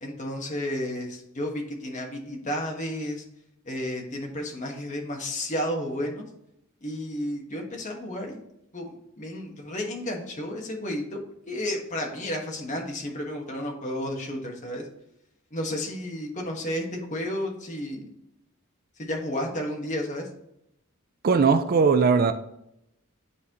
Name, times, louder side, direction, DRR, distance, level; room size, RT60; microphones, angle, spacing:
voice 1, 0.0-3.2 3.7-6.3 6.8-8.4 8.7-11.2 11.5-14.8 15.5-18.1 19.0-20.3, left 1 dB, 35° left, 1 dB, 1.3 m, -32 dB
voice 2, 21.2-22.3, right 5 dB, 40° right, 10 dB, 0.4 m, -19 dB
9.5 x 4.1 x 2.9 m, 0.80 s
head